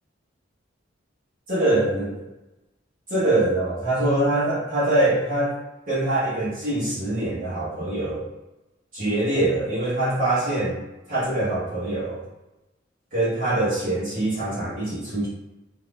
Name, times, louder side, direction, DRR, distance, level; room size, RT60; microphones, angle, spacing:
voice 1, 1.5-2.3 3.1-5.6 5.9-8.2 8.9-10.8 11.1-12.2 13.1-15.3, right 1 dB, 50° right, -11 dB, 1.3 m, -24 dB
3.7 x 2.8 x 2.5 m, 1.0 s
head